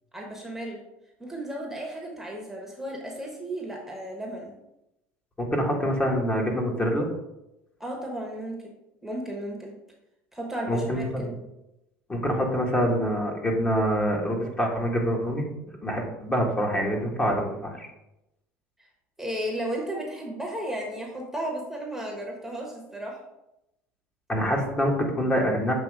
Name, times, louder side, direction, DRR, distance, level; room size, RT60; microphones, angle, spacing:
voice 1, 0.1-0.8 1.2-4.5 7.8-8.6 9.0-9.7 10.3-11.3 18.8-18.9 19.2-23.2, right 1 dB, 5° right, -1 dB, 1.2 m, -34 dB
voice 2, 5.4-7.1 10.7-11.3 12.1-15.5 15.8-17.9 24.3-25.7, equal, 20° left, 0 dB, 1.4 m, -25 dB
6.9 x 3.0 x 4.7 m, 0.90 s
supercardioid pair, 100°, 6 cm